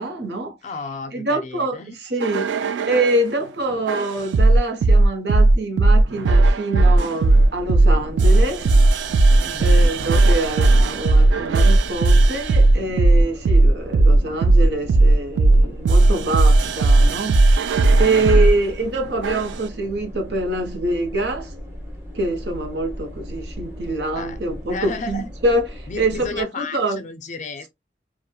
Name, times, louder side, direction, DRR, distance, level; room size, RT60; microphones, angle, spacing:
voice 1, 0.0-0.6 1.1-8.7 9.6-17.6 18.0-21.5 22.1-27.1, right 2 dB, 65° right, 0.7 m, -25 dB
voice 2, 0.6-1.9 9.4-9.9 17.9-18.5 24.2-24.4 24.7-25.3 25.9-27.7, left 4 dB, 45° left, 0.4 m, -33 dB
sound 1, 2.2-3.2 3.9-18.5 19.2-19.6, right 2 dB, 90° right, 0.3 m, -15 dB
sound 2, 7.2-26.4, equal, 15° right, 0.8 m, -37 dB
sound 3, 7.7-17.4, right 1 dB, 30° right, 1.2 m, -42 dB
3.0 x 2.0 x 2.2 m
head